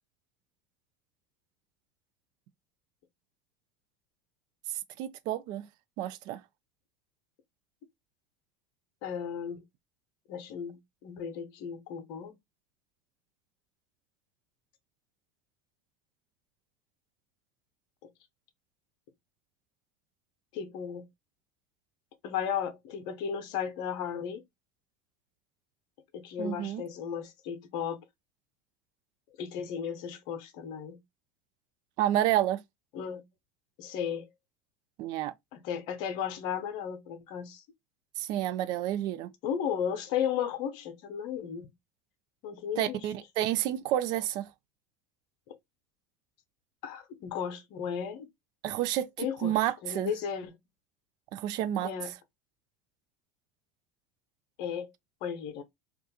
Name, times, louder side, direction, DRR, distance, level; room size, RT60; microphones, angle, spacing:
voice 1, 5.0-5.7 6.0-6.4 26.4-26.8 32.0-32.6 35.0-35.3 38.2-39.3 42.8-44.5 48.6-50.1 51.3-52.1, right 12 dB, 55° right, 0.3 m, -30 dB
voice 2, 9.0-9.6 10.3-12.3 20.5-21.1 22.2-24.4 26.1-28.0 29.4-31.0 32.9-33.2 33.8-34.2 35.5-37.6 39.4-41.7 42.4-43.0 45.5-45.6 46.8-48.3 49.2-49.5 49.8-50.5 51.8-52.1 54.6-54.9 55.2-55.6, left 8 dB, 60° left, 0.6 m, -35 dB
2.4 x 2.2 x 2.7 m
hypercardioid pair, 80°, 8 cm